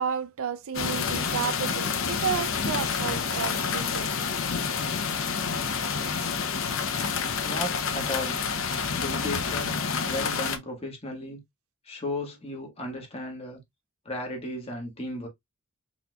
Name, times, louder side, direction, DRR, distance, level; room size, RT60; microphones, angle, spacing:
voice 1, 0.0-4.3, right 7 dB, 70° right, 0.5 m, -32 dB
sound 1, 0.7-10.6, left 5 dB, 65° left, 0.8 m, -28 dB
voice 2, 7.4-8.4 8.9-11.4 11.8-13.6 14.0-15.3, left 1 dB, 25° left, 1.6 m, -35 dB
4.3 x 4.2 x 2.3 m
head